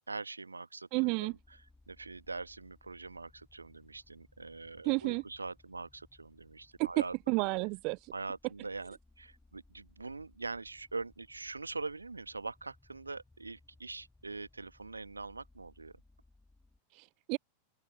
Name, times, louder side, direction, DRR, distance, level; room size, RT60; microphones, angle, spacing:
voice 1, 0.1-1.6 1.9-7.5 8.1-16.0, right 3 dB, 80° right, 1.6 m, -43 dB
voice 2, 0.9-1.3 4.8-5.2 6.8-6.9 7.3-8.1 16.9-17.4, right 30 dB, 45° right, 0.3 m, -31 dB
sound 1, 1.3-16.8, left 2 dB, 5° left, 5.1 m, -65 dB
figure-of-eight pair, 90°, 0 cm